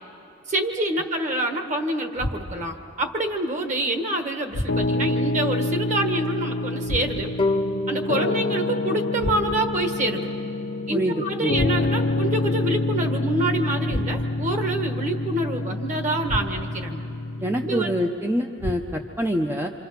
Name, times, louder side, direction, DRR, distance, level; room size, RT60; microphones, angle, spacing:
voice 1, 0.5-7.3 7.9-10.3 10.9-17.0 17.6-17.9, right 1 dB, 40° right, 5 dB, 1.5 m, -26 dB
sound 1, 2.2-2.8 4.5-5.1 6.8-7.5 9.2-9.8 11.5-12.2 13.9-14.5 16.2-16.9 18.6-19.2, left 1 dB, 90° left, 1.1 m, -32 dB
Piano, 4.7-18.0, left 2 dB, 60° left, 0.7 m, -27 dB
sound 2, 7.4-10.7, left 2 dB, 25° left, 0.9 m, -30 dB
voice 2, 10.9-11.5 17.4-19.7, equal, 10° right, 3 dB, 0.7 m, -25 dB
27.0 x 26.5 x 5.9 m, 2.7 s
head